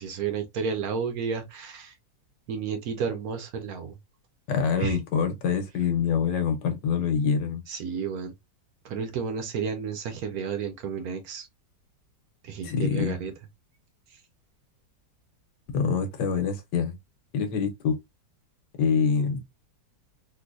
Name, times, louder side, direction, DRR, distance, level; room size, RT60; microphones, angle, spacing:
voice 1, 0.0-1.9 2.5-4.0 4.8-5.0 7.7-8.3 8.8-11.5 12.4-13.3, right 6 dB, 65° right, 1.1 m, -32 dB
voice 2, 4.5-7.6 12.6-13.2 15.7-16.9 17.3-18.0 18.8-19.4, left 6 dB, 80° left, 1.5 m, -25 dB
3.8 x 2.7 x 2.5 m
omnidirectional pair, 1.8 m